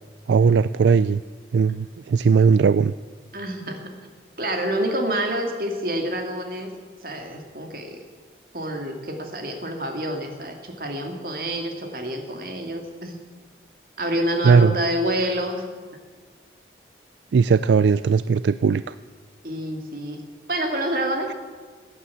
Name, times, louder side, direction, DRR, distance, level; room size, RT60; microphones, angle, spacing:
voice 1, 0.3-1.2 1.5-2.9 14.4-14.7 17.3-18.9, right 5 dB, 85° right, 15 dB, 0.3 m, -18 dB
voice 2, 3.3-3.9 4.4-6.7 7.0-8.0 8.5-13.2 14.0-15.6 19.4-20.2 20.5-21.3, right 1 dB, 55° right, 3 dB, 2.4 m, -27 dB
15.5 x 9.7 x 8.6 m, 1.5 s
head